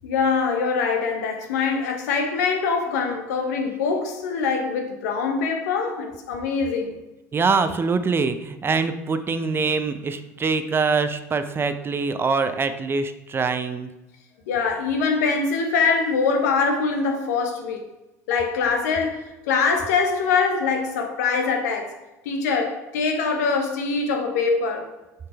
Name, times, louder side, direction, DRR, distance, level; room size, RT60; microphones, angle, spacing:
voice 1, 0.0-6.9 14.5-17.8 18.3-22.0 22.2-24.9, left 5 dB, 70° left, 1.1 m, -23 dB
voice 2, 7.3-13.9, right 4 dB, 25° right, 0.6 m, -24 dB
6.5 x 5.8 x 3.4 m
hypercardioid pair, 75°, 9 cm